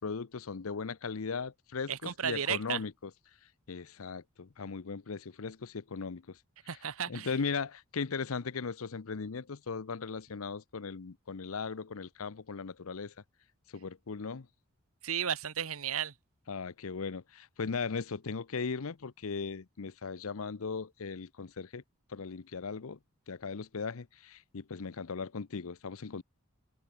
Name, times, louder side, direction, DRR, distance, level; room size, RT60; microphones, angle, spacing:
voice 1, 0.0-3.1 3.7-6.4 7.1-13.1 13.7-14.5 16.5-21.8 22.1-23.0 23.3-26.2, left 5 dB, 75° left, 0.7 m, -38 dB
voice 2, 1.9-2.8 6.7-7.3 15.0-16.1, right 8 dB, 75° right, 1.1 m, -34 dB
head